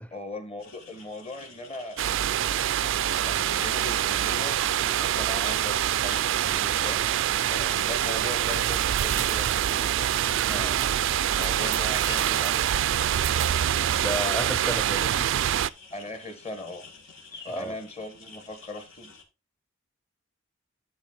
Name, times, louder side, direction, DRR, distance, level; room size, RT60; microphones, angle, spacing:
voice 1, 0.1-2.4 3.2-7.0 7.5-10.9 11.4-13.1 14.4-14.6 15.9-16.9 17.3-19.1, left 2 dB, 30° left, 1.4 m, -39 dB
sound 1, 0.6-19.2, left 4 dB, 75° left, 2.1 m, -50 dB
sound 2, 2.0-15.7, right 11 dB, 60° right, 0.3 m, -25 dB
sound 3, 3.2-17.7, left 5 dB, 50° left, 2.3 m, -53 dB
voice 2, 13.9-15.3 17.5-17.7, equal, 5° left, 0.5 m, -33 dB
10.5 x 4.3 x 3.8 m
head